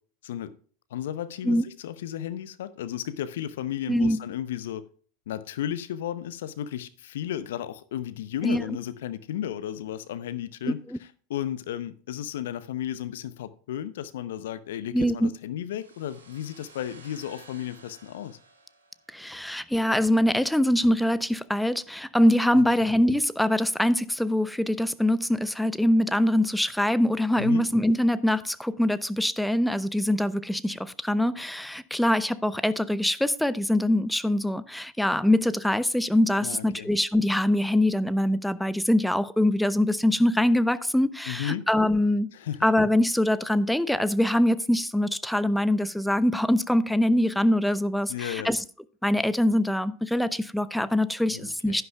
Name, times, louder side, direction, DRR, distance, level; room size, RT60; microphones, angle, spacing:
voice 1, 0.9-4.8 5.3-10.8 11.3-18.4 22.5-22.7 27.4-27.7 36.4-36.9 41.3-41.7 42.3-42.6 48.1-48.5 51.3-51.8, left 11 dB, 70° left, 0.7 m, -34 dB
voice 2, 3.9-4.2 8.4-8.6 10.7-11.0 14.9-15.3 19.1-42.3 42.6-48.6 49.0-51.8, left 1 dB, 5° left, 0.6 m, -23 dB
sound 1, 15.7-19.4, right 3 dB, 85° right, 2.5 m, -53 dB
11.0 x 10.5 x 2.3 m
hypercardioid pair, 85°, 0 cm